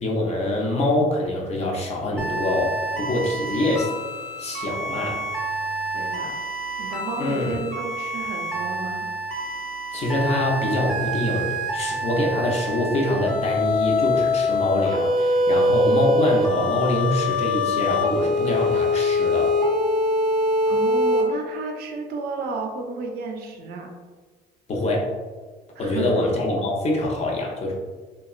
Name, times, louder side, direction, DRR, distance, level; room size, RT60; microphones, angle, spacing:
voice 1, 0.0-3.9 4.4-5.2 7.2-7.6 9.9-19.6 24.7-25.1 25.8-27.7, left 1 dB, 40° left, -1 dB, 0.6 m, -24 dB
sound 1, 2.2-21.2, left 1 dB, 5° left, 0.7 m, -25 dB
voice 2, 5.9-6.3 6.8-9.1 20.7-23.9 25.8-26.2, right 4 dB, 70° right, 2 dB, 0.5 m, -32 dB
2.8 x 2.2 x 2.3 m, 1.4 s
cardioid pair, 110°, 17 cm